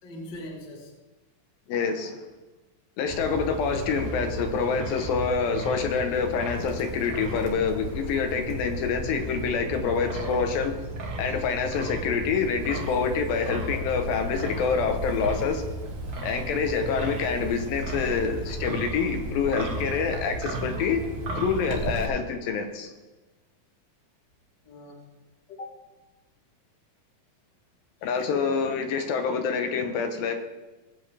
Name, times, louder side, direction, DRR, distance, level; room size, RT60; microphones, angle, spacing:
voice 1, 0.0-1.0 24.6-25.1 25.5-25.8 28.3-28.6, left 1 dB, 40° left, 0 dB, 2.0 m, -40 dB
voice 2, 1.7-2.2 3.0-10.8 11.2-15.6 16.2-21.0 21.4-22.9 28.0-30.3, left 5 dB, 80° left, 5 dB, 2.7 m, -26 dB
Wind, 3.1-22.1, right 1 dB, 65° right, 0.9 m, -34 dB
19.0 x 8.0 x 3.3 m, 1.2 s
omnidirectional pair, 4.1 m